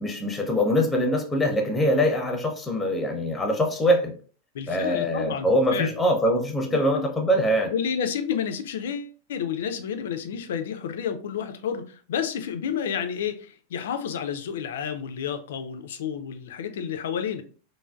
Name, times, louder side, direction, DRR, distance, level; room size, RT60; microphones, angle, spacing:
voice 1, 0.0-4.1 4.7-7.7, equal, 10° left, 0.6 m, -23 dB
voice 2, 4.5-5.9 6.7-6.8 7.7-17.4, left 7 dB, 60° left, 0.3 m, -30 dB
3.3 x 2.1 x 2.3 m
figure-of-eight pair, 90°, 0 cm